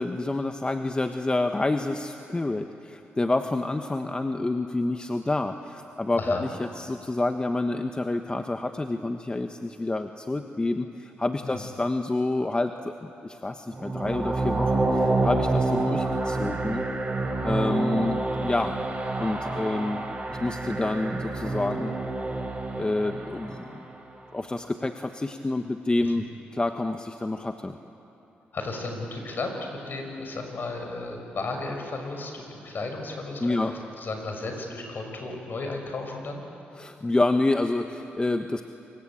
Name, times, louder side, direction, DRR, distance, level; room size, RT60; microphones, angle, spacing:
voice 1, 0.0-16.9 17.4-18.8 19.2-20.0 20.3-22.0 22.8-23.8 24.3-26.2 26.5-27.8 33.4-33.7 36.7-38.6, left 2 dB, 20° left, 6 dB, 1.2 m, -28 dB
voice 2, 6.2-6.5 11.4-11.6 28.5-29.5 29.9-36.4, left 3 dB, 55° left, 3 dB, 6.2 m, -34 dB
sound 1, 13.7-23.8, right 2 dB, 30° right, 4.9 m, -28 dB
27.0 x 23.5 x 8.7 m, 2.8 s
supercardioid pair, 60°, 4 cm